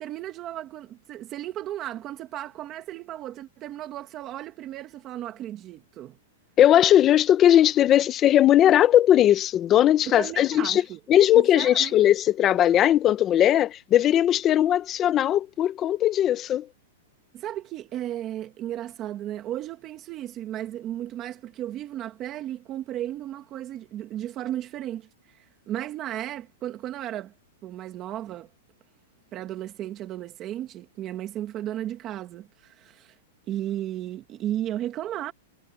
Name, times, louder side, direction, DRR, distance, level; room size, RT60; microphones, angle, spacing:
voice 1, 0.0-6.2 10.1-11.0 11.3-11.9 17.3-27.3 27.6-28.5 29.3-33.2 33.5-35.3, right 12 dB, 25° right, 1.8 m, -34 dB
voice 2, 6.6-10.8 11.1-16.7, left 11 dB, 20° left, 1.1 m, -19 dB
supercardioid pair, 165°, 0 cm